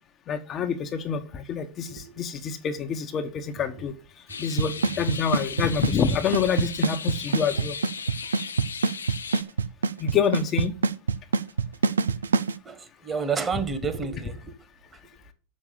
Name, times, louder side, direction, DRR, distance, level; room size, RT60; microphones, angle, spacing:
voice 1, 0.3-3.9 4.4-7.8 10.0-10.7, left 7 dB, 35° left, 1.1 m, -27 dB
voice 2, 1.9-2.2 3.6-3.9 4.3-4.4 4.8-4.9 5.6-5.8 7.5-7.6 12.6-14.6 14.9-15.1, right 5 dB, 20° right, 1.7 m, -32 dB
sound 1, 4.3-9.4, left 5 dB, 90° left, 0.7 m, -37 dB
Drum kit / Snare drum / Bass drum, 4.6-12.5, right 5 dB, 85° right, 0.5 m, -23 dB
7.2 x 6.4 x 7.4 m
hypercardioid pair, 100°, 0 cm